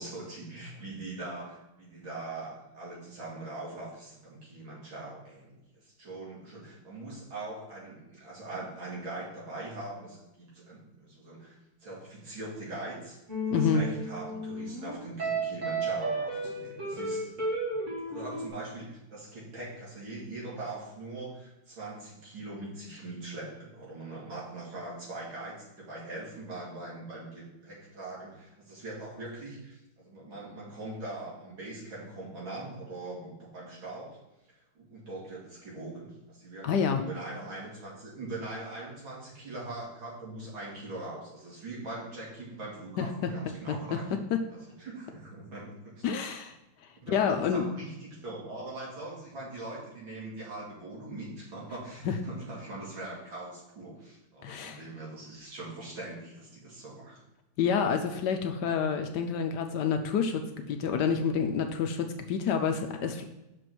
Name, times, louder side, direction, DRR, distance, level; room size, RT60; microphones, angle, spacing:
voice 1, 0.0-5.5 5.8-13.2 13.5-17.3 18.1-34.1 34.8-44.1 44.5-46.1 47.0-57.2, right 2 dB, 80° right, -6 dB, 3.4 m, -42 dB
sound 1, 13.3-18.5, right 2 dB, 40° right, 2.3 m, -33 dB
voice 2, 13.5-13.9 36.6-37.0 43.0-43.3 43.7-43.8 46.0-46.5 47.1-47.6 52.0-52.2 54.4-54.8 57.6-63.2, left 6 dB, 70° left, 6 dB, 1.1 m, -28 dB
6.0 x 5.0 x 6.0 m, 0.96 s
omnidirectional pair, 2.1 m